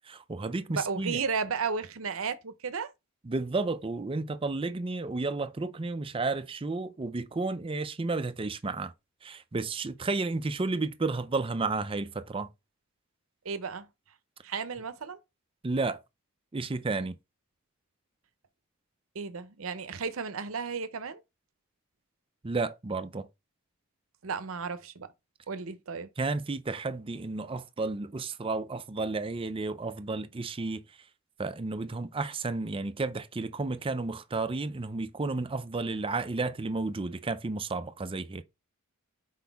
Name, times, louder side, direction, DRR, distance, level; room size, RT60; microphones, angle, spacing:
voice 1, 0.1-1.2 3.3-8.9 9.2-12.5 15.6-16.0 16.5-17.2 22.4-23.3 26.2-30.8 31.4-38.4, right 3 dB, 25° right, 0.5 m, -32 dB
voice 2, 0.7-2.9 13.4-13.9 14.4-15.2 19.1-21.2 24.2-25.1 25.5-26.1, right 5 dB, 70° right, 0.7 m, -34 dB
6.0 x 4.7 x 3.5 m
head